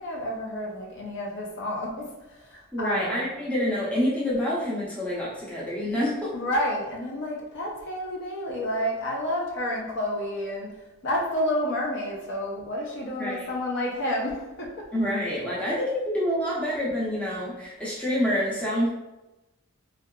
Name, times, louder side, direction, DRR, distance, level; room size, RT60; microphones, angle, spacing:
voice 1, 0.0-3.3 6.3-10.7 11.0-14.8, left 1 dB, 60° left, -2 dB, 0.5 m, -30 dB
voice 2, 2.7-6.3 13.2-13.5 14.9-18.9, equal, 5° left, -7 dB, 0.6 m, -27 dB
2.7 x 2.2 x 2.2 m, 0.99 s
head